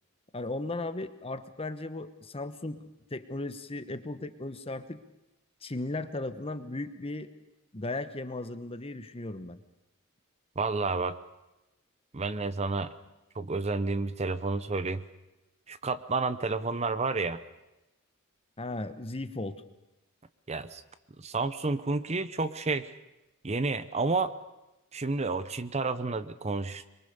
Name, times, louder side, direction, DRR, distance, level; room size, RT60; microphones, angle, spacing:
voice 1, 0.3-2.8 3.1-5.0 5.6-7.3 7.7-9.6 18.6-19.6, left 2 dB, 25° left, 11 dB, 1.1 m, -36 dB
voice 2, 10.6-11.2 12.1-12.9 13.3-15.0 15.7-17.4 20.5-20.8 21.2-22.9 23.4-24.3 24.9-26.9, right 3 dB, 30° right, 13 dB, 0.7 m, -30 dB
25.0 x 22.5 x 6.8 m, 0.95 s
head